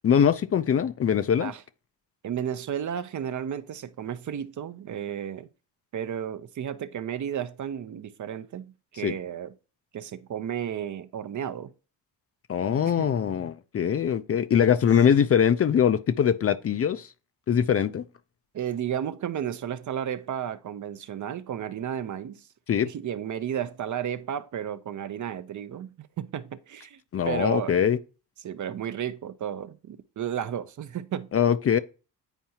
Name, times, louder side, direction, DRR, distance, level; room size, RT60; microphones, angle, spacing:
voice 1, 0.0-1.5 9.0-9.1 12.5-17.1 17.5-18.0 22.7-22.9 27.1-28.0 31.3-31.8, left 8 dB, 35° left, 0.4 m, -22 dB
voice 2, 2.2-5.5 5.9-9.5 9.9-11.7 12.8-13.1 18.5-22.5 22.8-27.0 27.3-27.8 28.4-31.3, right 9 dB, 45° right, 0.6 m, -33 dB
9.0 x 4.6 x 2.8 m
cardioid pair, 105°, 41 cm